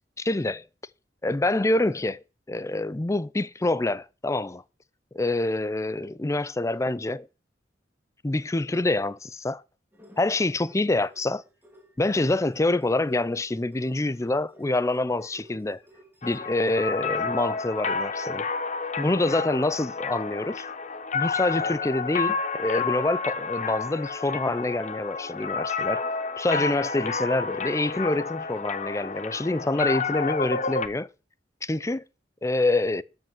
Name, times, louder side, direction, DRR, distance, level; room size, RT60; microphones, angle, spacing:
voice 1, 0.2-0.6 1.2-2.2 2.5-4.6 5.1-7.3 8.2-9.6 10.2-11.4 12.0-15.8 16.2-18.5 19.0-20.6 21.1-26.0 26.4-31.1 31.6-32.0 32.4-33.0, left 2 dB, 15° left, 0.5 m, -26 dB
sound 1, 9.9-17.5 17.8-20.6 21.1-21.2, equal, 10° right, 2.5 m, -56 dB
sound 2, 16.2-30.9, left 5 dB, 45° left, 0.9 m, -30 dB
13.5 x 5.4 x 7.1 m
head